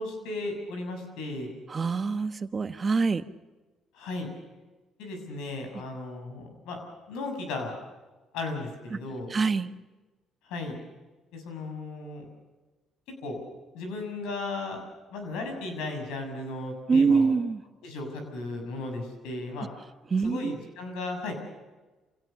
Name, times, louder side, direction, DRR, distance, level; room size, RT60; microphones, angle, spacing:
voice 1, 0.0-1.5 3.9-4.3 5.0-6.8 7.1-7.8 8.3-9.3 10.4-10.8 11.3-12.3 13.2-13.4 13.7-14.8 15.1-17.3 17.8-19.7 20.2-21.4, left 2 dB, 85° left, 5 dB, 6.9 m, -35 dB
voice 2, 1.7-3.2 8.9-9.0 9.3-9.7 16.9-17.6 20.1-20.6, right 4 dB, 35° right, 11 dB, 1.4 m, -25 dB
27.0 x 17.5 x 7.0 m, 1.2 s
supercardioid pair, 80°, 0 cm